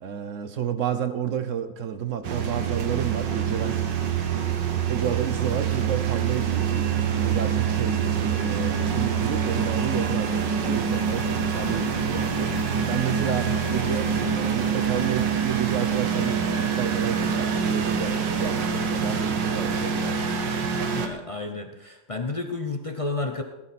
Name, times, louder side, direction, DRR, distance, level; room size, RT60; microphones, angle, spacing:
voice 1, 0.0-3.8 4.9-6.9 7.1-12.5 12.9-20.3, right 8 dB, 55° right, 10 dB, 1.0 m, -31 dB
sound 1, 2.2-21.1, right 6 dB, 85° right, 1.9 m, -25 dB
voice 2, 20.9-23.4, left 3 dB, 40° left, 4 dB, 0.4 m, -31 dB
18.0 x 11.5 x 4.3 m, 1.1 s
omnidirectional pair, 1.9 m